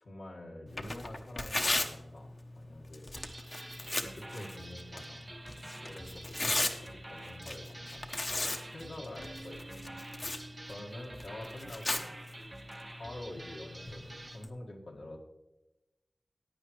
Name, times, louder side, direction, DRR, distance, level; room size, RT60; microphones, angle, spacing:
voice 1, 0.0-3.3 3.8-8.2 8.4-9.9 10.6-12.1 12.9-15.2, left 1 dB, 75° left, -1 dB, 1.9 m, -47 dB
Tearing, 0.7-14.5, left 2 dB, 40° left, 0.9 m, -38 dB
sound 1, 3.2-14.4, right 1 dB, 25° right, 0.4 m, -48 dB
voice 2, 9.2-10.7, right 3 dB, 65° right, 7 dB, 0.8 m, -52 dB
15.0 x 9.5 x 3.2 m, 1.0 s
wide cardioid pair, 55°, 0 cm